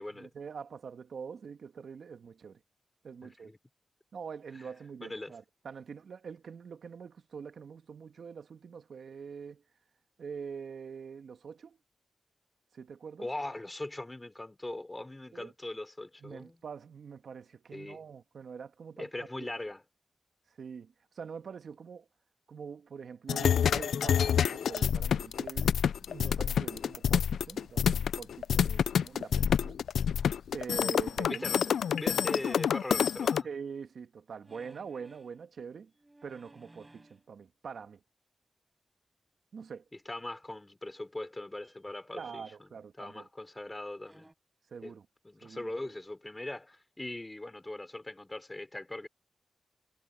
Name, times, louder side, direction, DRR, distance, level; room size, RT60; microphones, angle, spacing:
voice 1, 0.0-2.6 3.0-3.5 4.1-9.6 10.2-11.8 12.7-13.3 15.3-15.5 16.2-19.1 19.4-19.5 20.5-22.1 22.5-29.8 30.5-31.4 33.4-35.9 36.2-38.0 39.5-39.8 42.1-43.3 44.7-45.1 45.4-45.7, right 6 dB, 75° right, 1.7 m, -44 dB
voice 2, 3.2-3.6 5.0-5.3 13.2-16.6 17.7-18.1 19.0-19.8 31.3-33.5 39.9-42.7 43.0-44.3 44.8-44.9 45.2-49.1, left 2 dB, 25° left, 4.0 m, -40 dB
sound 1, 23.3-33.4, left 8 dB, 90° left, 0.5 m, -28 dB
sound 2, 30.2-30.8 34.4-35.4 35.9-37.3 40.4-40.5 41.6-42.5 43.9-44.3, right 2 dB, 25° right, 6.7 m, -59 dB
cardioid pair, 45°, 0 cm